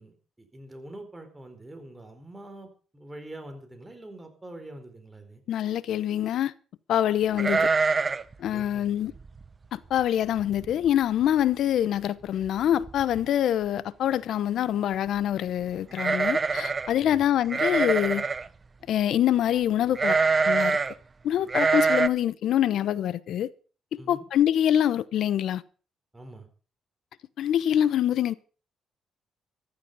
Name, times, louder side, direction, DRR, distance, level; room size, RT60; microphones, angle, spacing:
voice 1, 0.0-5.4 8.5-8.8 17.0-17.3 24.0-24.2 26.1-26.5, right 1 dB, 15° right, 4.3 m, -44 dB
voice 2, 5.5-6.5 6.9-7.7 8.4-9.1 9.7-18.3 18.9-20.2 20.5-20.8 21.2-23.5 23.9-25.6 27.4-28.3, left 11 dB, 75° left, 0.8 m, -25 dB
sound 1, 7.4-8.3 8.6-8.7 9.2-9.4 10.0-10.1 10.4-10.9 11.2-11.3 12.4-12.5 12.8-13.3 15.9-16.9 17.5-18.5 20.0-20.9 21.5-22.1, right 4 dB, 35° right, 0.8 m, -24 dB
14.5 x 11.5 x 5.5 m
cardioid pair, 90°, 0 cm